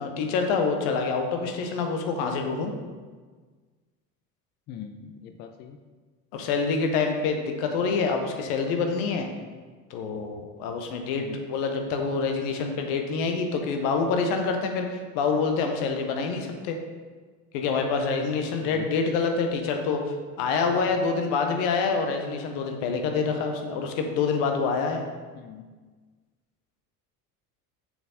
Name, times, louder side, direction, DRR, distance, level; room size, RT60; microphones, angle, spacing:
voice 1, 0.0-2.7 6.3-9.3 9.9-16.8 17.5-25.0, left 4 dB, 55° left, 4 dB, 1.2 m, -26 dB
voice 2, 4.7-5.8 11.2-11.5 18.6-18.9 25.3-25.7, left 8 dB, 25° left, 6 dB, 0.3 m, -42 dB
6.8 x 6.1 x 4.2 m, 1.4 s
figure-of-eight pair, 60°, 47 cm